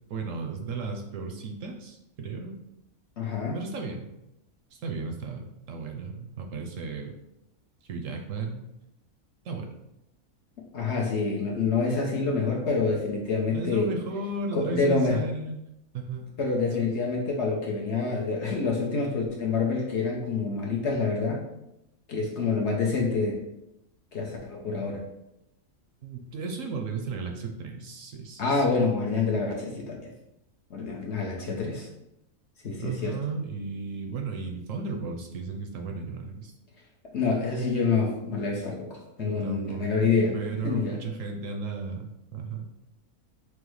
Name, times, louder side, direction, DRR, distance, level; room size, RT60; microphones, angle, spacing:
voice 1, 0.1-2.6 3.5-4.1 4.7-7.2 7.8-8.7 9.4-9.7 13.5-15.6 15.9-16.3 26.0-28.8 32.8-36.5 39.2-42.7, right 3 dB, 70° right, 3 dB, 0.9 m, -35 dB
voice 2, 3.2-3.6 10.7-13.9 14.5-15.2 16.4-21.4 22.1-23.4 24.1-25.0 28.4-30.1 30.7-31.9 32.6-33.2 37.1-40.3 40.6-41.0, left 4 dB, 60° left, -1 dB, 0.9 m, -27 dB
6.1 x 2.1 x 3.1 m, 0.86 s
omnidirectional pair, 1.6 m